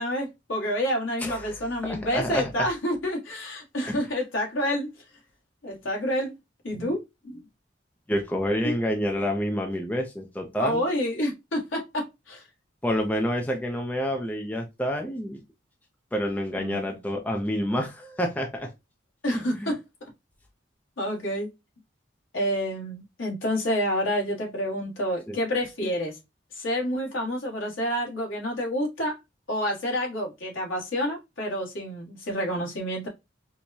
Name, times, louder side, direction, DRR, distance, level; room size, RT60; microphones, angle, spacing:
voice 1, 0.0-4.9 5.6-6.3 6.6-7.0 7.3-7.4 8.6-8.7 10.6-12.4 16.6-16.8 19.2-19.8 21.0-21.5 22.3-26.2 26.5-29.1 29.5-33.1, equal, 85° left, 1.3 m, -28 dB
voice 2, 1.2-2.7 3.9-4.0 6.7-6.9 8.1-10.8 12.8-15.4 16.1-18.7 19.3-19.7 25.3-25.4, equal, 10° left, 0.5 m, -28 dB
4.5 x 2.1 x 2.6 m
head